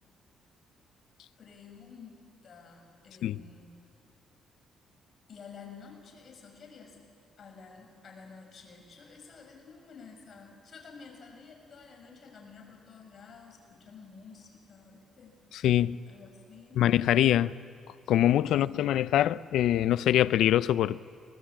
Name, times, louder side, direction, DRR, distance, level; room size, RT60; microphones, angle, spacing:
voice 1, 1.4-3.7 5.3-7.0 7.4-15.4 16.1-16.8 18.6-18.9, left 5 dB, 50° left, 6.7 m, -51 dB
voice 2, 15.5-16.0 16.8-17.5 18.1-21.0, left 12 dB, 80° left, 0.5 m, -24 dB
24.5 x 20.0 x 8.7 m
cardioid pair, 90°, 0 cm